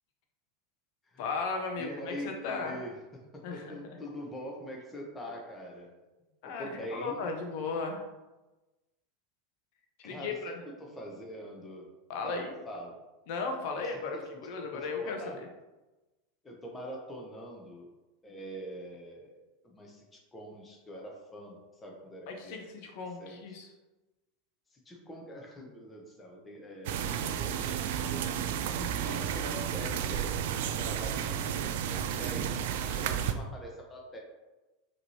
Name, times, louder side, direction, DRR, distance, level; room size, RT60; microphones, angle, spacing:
voice 1, 1.2-2.8 3.4-3.8 6.4-8.1 10.0-10.5 12.1-12.5 13.3-15.5 22.3-23.7 28.8-29.3, left 4 dB, 60° left, 3 dB, 0.8 m, -36 dB
voice 2, 1.8-5.9 6.6-7.2 10.0-11.9 12.2-13.0 13.8-14.3 14.7-15.4 16.4-17.9 18.2-19.4 19.6-22.7 23.2-23.6 24.7-28.4 28.8-34.2, equal, 20° left, 0 dB, 1.0 m, -44 dB
sound 1, 26.8-33.3, right 9 dB, 65° right, 0.3 m, -32 dB
5.0 x 3.1 x 2.9 m, 1.1 s
hypercardioid pair, 85°, 0 cm